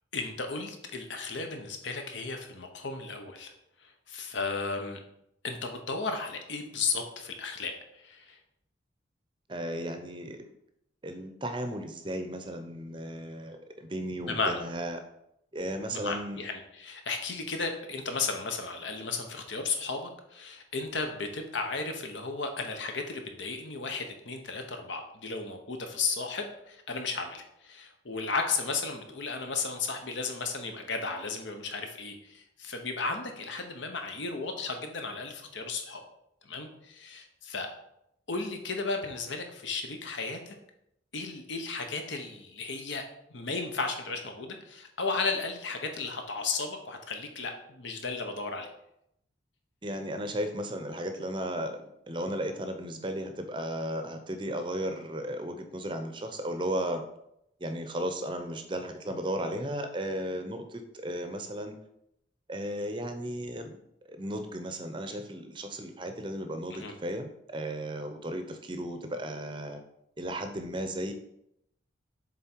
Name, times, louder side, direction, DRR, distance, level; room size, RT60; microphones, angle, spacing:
voice 1, 0.1-3.5 3.8-5.0 5.4-8.4 14.3-14.6 15.9-36.0 36.4-37.7 38.3-40.5 41.1-43.0 43.3-48.7 66.7-66.9, left 4 dB, 75° left, 5 dB, 1.0 m, -34 dB
voice 2, 9.5-10.5 11.0-15.0 15.5-16.4 49.8-57.0 57.6-61.8 62.5-63.8 64.1-69.8 70.2-71.1, right 1 dB, 25° right, 7 dB, 0.6 m, -35 dB
7.4 x 3.8 x 4.5 m, 0.79 s
head